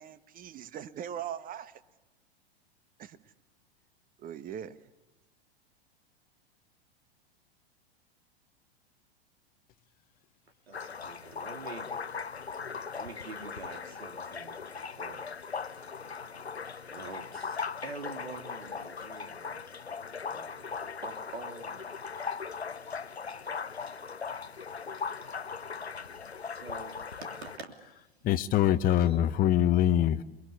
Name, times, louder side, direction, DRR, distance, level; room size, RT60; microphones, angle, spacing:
voice 1, 0.0-1.8 3.0-3.3 4.2-4.8, right 9 dB, 25° right, 13 dB, 1.4 m, -41 dB
sound 1, 10.7-27.6, left 5 dB, 85° left, 0.8 m, -39 dB
voice 2, 10.7-11.9 12.9-15.4 16.8-19.7 20.2-21.9 23.9-24.0 26.1-27.7 28.6-29.3, right 3 dB, 80° right, 6 dB, 3.1 m, -46 dB
voice 3, 28.2-30.2, left 11 dB, 25° left, 10 dB, 1.0 m, -24 dB
29.0 x 22.0 x 8.4 m, 1.1 s
figure-of-eight pair, 95°, 31 cm